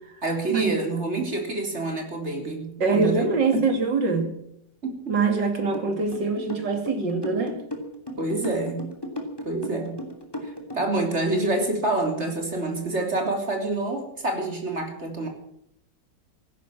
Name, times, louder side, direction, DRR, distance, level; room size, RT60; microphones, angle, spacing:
voice 1, 0.2-3.3 3.5-3.6 4.8-5.2 8.2-8.9 9.4-10.0 10.4-15.3, right 2 dB, 35° right, 3 dB, 3.9 m, -27 dB
voice 2, 2.8-4.3 5.1-7.6, right 4 dB, 75° right, 5 dB, 3.3 m, -24 dB
sound 1, 5.7-11.0, left 1 dB, 10° left, 2.8 m, -35 dB
15.5 x 12.5 x 7.4 m, 0.75 s
omnidirectional pair, 2.0 m